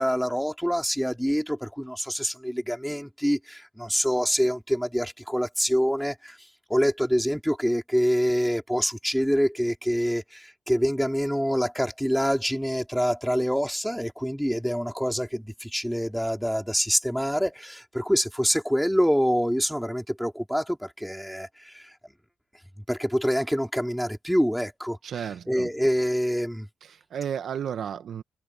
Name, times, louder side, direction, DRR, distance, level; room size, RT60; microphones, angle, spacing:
voice 1, 0.0-6.4 6.7-21.9 22.9-25.0 25.5-26.7, equal, ahead, 3.7 m, -26 dB
voice 2, 25.0-25.7 26.8-28.2, right 8 dB, 70° right, 1.2 m, -33 dB
cardioid pair, 75°, 0 cm